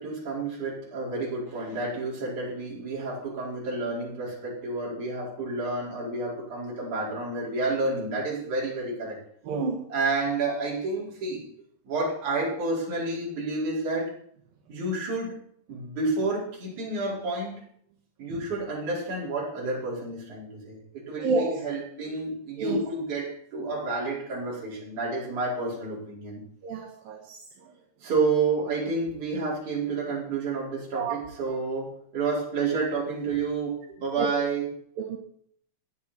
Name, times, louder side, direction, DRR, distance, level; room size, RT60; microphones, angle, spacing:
voice 1, 0.0-9.2 9.9-11.4 11.8-14.1 14.7-15.4 15.7-17.6 18.2-26.4 28.0-34.7, right 3 dB, 50° right, -5 dB, 6.0 m, -30 dB
voice 2, 9.5-9.8 21.2-21.5 22.6-22.8 26.6-27.2 31.0-31.1 34.2-34.3 35.0-35.2, right 4 dB, 70° right, 0 dB, 3.2 m, -28 dB
17.0 x 11.0 x 4.3 m, 0.63 s
omnidirectional pair, 4.4 m